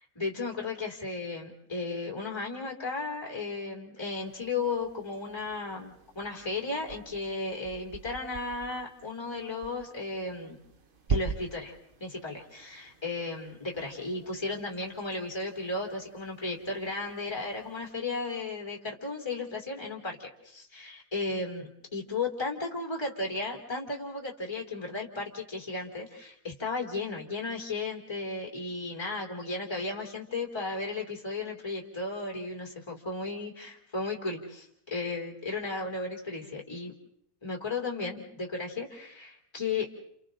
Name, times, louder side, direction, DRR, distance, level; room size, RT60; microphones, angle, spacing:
voice 1, 0.1-10.6 11.1-11.7 12.0-36.9 37.4-39.9, left 3 dB, 15° left, 0 dB, 2.8 m, -35 dB
sound 1, 4.2-17.9, right 5 dB, 35° right, 0.9 m, -42 dB
30.0 x 29.5 x 3.8 m, 0.70 s
omnidirectional pair, 2.1 m